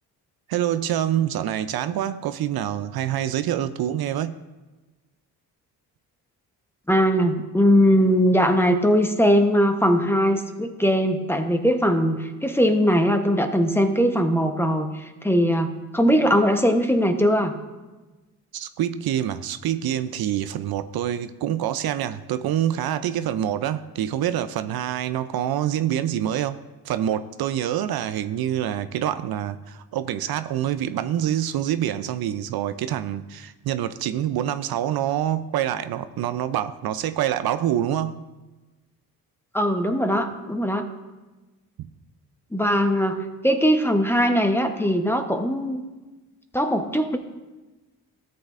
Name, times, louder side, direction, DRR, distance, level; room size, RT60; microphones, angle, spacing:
voice 1, 0.5-4.4 18.5-26.6 26.8-38.2, right 11 dB, 65° right, 12 dB, 0.5 m, -26 dB
voice 2, 6.9-17.5 39.5-40.9 42.5-45.8 46.5-47.2, equal, 5° left, 6 dB, 0.9 m, -20 dB
13.5 x 7.7 x 2.5 m, 1.2 s
cardioid pair, 75°, 40 cm